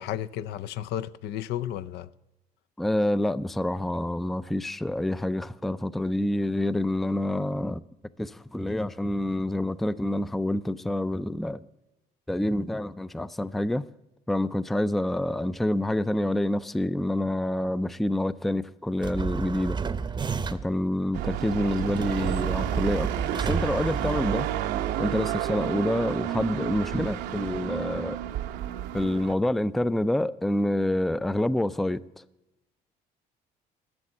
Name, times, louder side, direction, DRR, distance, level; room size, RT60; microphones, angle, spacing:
voice 1, 0.0-2.1, left 11 dB, 80° left, 0.5 m, -33 dB
voice 2, 2.8-7.8 8.2-11.6 12.3-13.8 14.3-19.8 20.5-24.5 25.0-28.2 28.9-32.2, left 1 dB, ahead, 0.3 m, -27 dB
sound 1, 19.0-20.8 22.0-24.8, right 5 dB, 25° right, 0.7 m, -32 dB
sound 2, 21.1-29.3, right 11 dB, 85° right, 0.8 m, -31 dB
12.5 x 6.5 x 8.6 m
cardioid pair, 110°, 17 cm